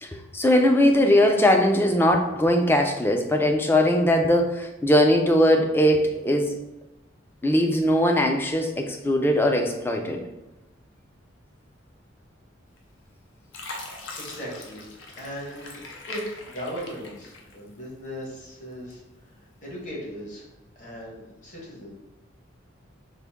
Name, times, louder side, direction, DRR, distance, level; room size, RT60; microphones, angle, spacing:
voice 1, 0.0-6.5 7.4-10.2, left 1 dB, 10° left, 4 dB, 0.3 m, -20 dB
Fill (with liquid), 12.8-13.1 13.5-17.9 18.4-19.2 19.7-19.9, left 2 dB, 75° left, 0.6 m, -41 dB
voice 2, 14.2-14.9 15.2-15.8 16.1-20.5 20.7-21.9, equal, 40° left, -4 dB, 1.2 m, -38 dB
4.0 x 2.5 x 3.5 m, 1.0 s
head